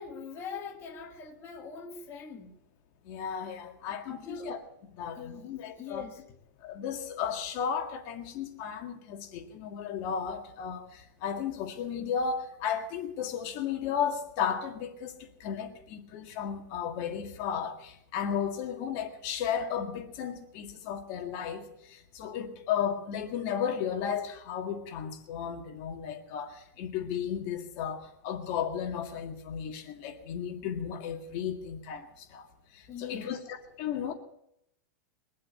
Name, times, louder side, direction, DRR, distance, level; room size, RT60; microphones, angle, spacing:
voice 1, 0.0-2.6 4.1-4.5 5.1-6.2 32.9-33.4, left 5 dB, 25° left, 0 dB, 1.8 m, -42 dB
voice 2, 3.1-4.6 4.9-6.1 6.6-32.5 32.7-34.1, left 8 dB, 40° left, 4 dB, 2.0 m, -34 dB
22.5 x 7.7 x 8.2 m, 0.80 s
supercardioid pair, 155°, 11 cm